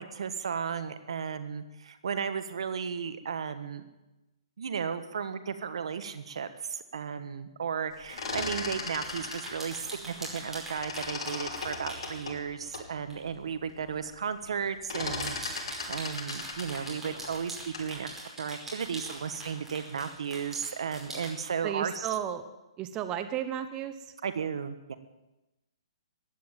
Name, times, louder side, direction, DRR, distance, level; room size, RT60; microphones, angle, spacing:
voice 1, 0.0-3.9 4.6-22.1 24.2-25.0, right 6 dB, 65° right, 10 dB, 1.4 m, -34 dB
sound 1, 7.9-10.5 10.8-12.9 13.4-13.5 13.8-14.2 14.4-18.0, left 3 dB, 55° left, 6.0 m, -37 dB
sound 2, 9.0-12.3 13.1-13.3 13.7-13.8 15.0-21.3, right 1 dB, 5° right, 5.2 m, -42 dB
voice 2, 21.6-22.4 22.8-23.9, right 10 dB, 25° right, 9 dB, 1.1 m, -33 dB
15.5 x 10.0 x 9.0 m, 1.0 s
figure-of-eight pair, 130°, 3 cm